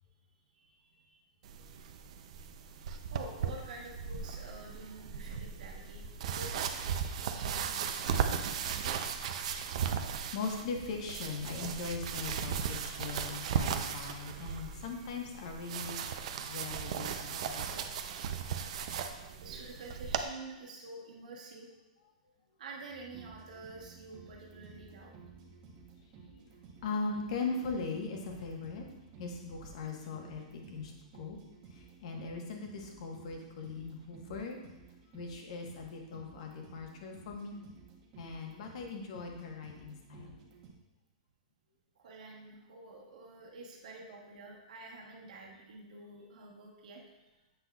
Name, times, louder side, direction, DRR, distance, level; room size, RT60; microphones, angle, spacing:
voice 1, 0.5-1.2 3.1-6.8 7.2-9.2 19.4-21.7 22.6-25.1 41.9-47.0, right 3 dB, 80° right, -1 dB, 1.1 m, -49 dB
sound 1, 1.4-20.2, right 7 dB, 55° right, 0.5 m, -37 dB
voice 2, 10.3-17.9 26.8-28.8 29.2-31.4 31.7-34.6 35.1-37.6 38.2-40.4, left 4 dB, 55° left, 2 dB, 1.2 m, -40 dB
sound 2, 22.9-40.7, right 5 dB, 30° right, 0.9 m, -55 dB
7.9 x 5.9 x 2.3 m, 1.0 s
supercardioid pair, 165°, 4 cm